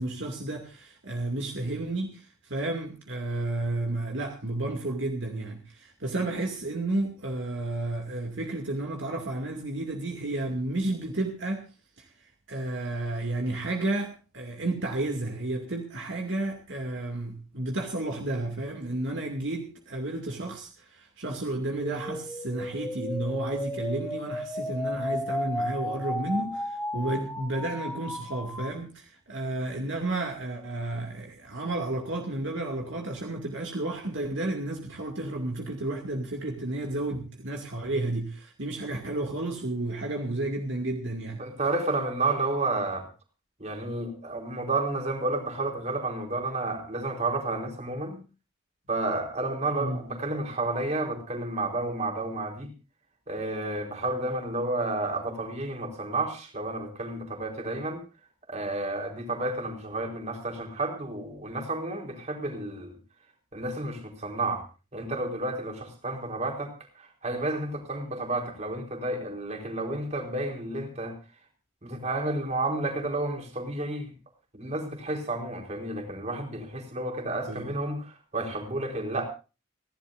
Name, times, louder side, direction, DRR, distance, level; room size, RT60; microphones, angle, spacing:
voice 1, 0.0-11.6 12.0-41.4 49.7-50.0 77.5-77.7, right 2 dB, 60° right, 2 dB, 2.4 m, -32 dB
sound 1, 21.8-28.7, left 1 dB, 5° left, 1.2 m, -34 dB
voice 2, 41.4-43.1 43.6-48.2 48.9-52.7 53.3-58.0 58.5-62.9 63.5-64.6 64.9-71.1 71.8-74.1 74.5-79.2, right 2 dB, 35° right, 2 dB, 4.2 m, -31 dB
30.0 x 11.5 x 2.6 m, 0.33 s
head